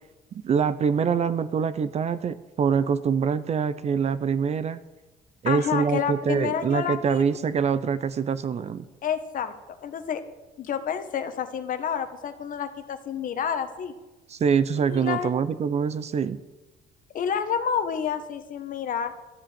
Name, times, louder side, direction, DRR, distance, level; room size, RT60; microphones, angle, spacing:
voice 1, 0.3-4.8 5.4-8.9 14.3-16.4, right 6 dB, 40° right, 15 dB, 0.7 m, -25 dB
voice 2, 5.4-7.2 9.0-10.2 10.6-13.9 14.9-15.3 17.1-19.1, left 8 dB, 55° left, 9 dB, 1.4 m, -29 dB
13.0 x 8.1 x 8.9 m, 1.1 s
cardioid pair, 110°, 17 cm